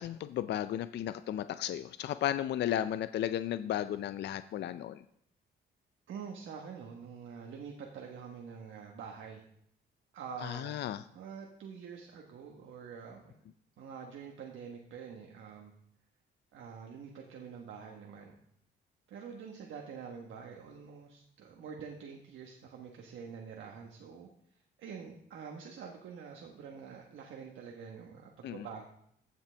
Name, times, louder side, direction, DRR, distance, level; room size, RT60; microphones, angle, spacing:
voice 1, 0.0-5.0 10.4-11.0 28.4-28.7, left 11 dB, 60° left, 12 dB, 0.4 m, -34 dB
voice 2, 6.1-9.4 10.1-10.8 11.1-13.4 13.8-15.7 16.5-18.3 19.1-24.3 24.8-28.8, right 6 dB, 75° right, 1 dB, 1.2 m, -46 dB
15.5 x 5.9 x 3.4 m, 0.72 s
cardioid pair, 90°, 20 cm